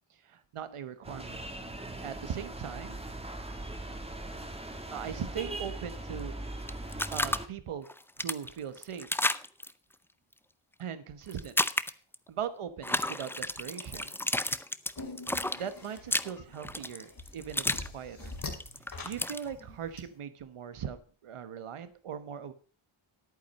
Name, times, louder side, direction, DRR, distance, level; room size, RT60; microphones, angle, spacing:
voice 1, 0.3-1.4 2.0-3.0 4.9-6.3 7.1-7.9 8.2-9.1 10.8-11.6 12.3-14.2 15.6-18.4 19.0-22.5, right 8 dB, 90° right, 12 dB, 1.2 m, -39 dB
sound 1, 1.0-7.5, right 2 dB, 10° right, 1.5 m, -40 dB
sound 2, 6.7-7.4 7.8-9.7 11.3-12.1 12.8-17.9 18.2-19.4, left 1 dB, 5° left, 0.4 m, -31 dB
sound 3, 15.0-20.0, left 3 dB, 45° left, 2.6 m, -44 dB
11.0 x 9.1 x 5.3 m, 0.42 s
wide cardioid pair, 135°, 50 cm